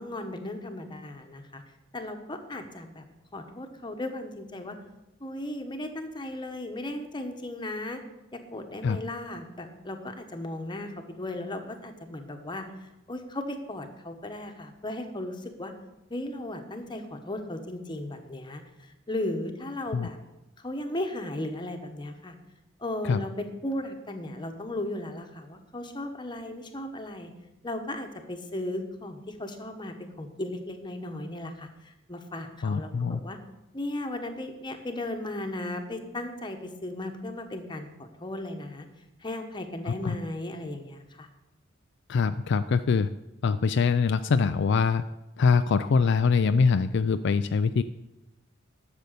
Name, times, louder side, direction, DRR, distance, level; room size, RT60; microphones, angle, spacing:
voice 1, 0.0-1.6 1.9-3.0 3.3-4.8 5.2-8.0 8.3-10.9 11.2-15.7 16.1-20.2 20.6-22.3 22.8-27.3 27.6-33.4 33.7-38.8 39.2-41.3, left 1 dB, 25° left, 5 dB, 1.2 m, -36 dB
voice 2, 32.6-33.2 39.9-40.2 42.1-43.1 43.4-45.0 45.4-47.8, left 5 dB, 60° left, 10 dB, 0.4 m, -23 dB
12.0 x 6.9 x 6.7 m, 0.96 s
head